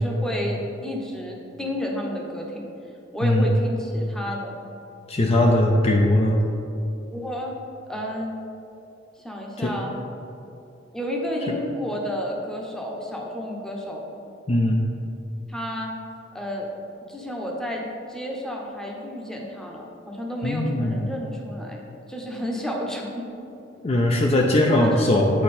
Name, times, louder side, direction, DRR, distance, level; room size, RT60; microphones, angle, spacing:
voice 1, 0.0-2.7 3.1-4.5 7.1-7.5 7.9-8.4 9.2-10.0 10.9-14.1 15.5-15.9 16.3-16.7 17.1-21.8 22.1-23.3 24.8-25.1, equal, 5° left, -1 dB, 0.8 m, -31 dB
voice 2, 3.2-3.5 5.1-6.4 9.6-9.7 11.5-11.6 14.5-14.8 20.4-21.1 23.8-25.4, left 1 dB, 35° left, 1 dB, 0.5 m, -20 dB
8.4 x 4.5 x 4.2 m, 2.7 s
head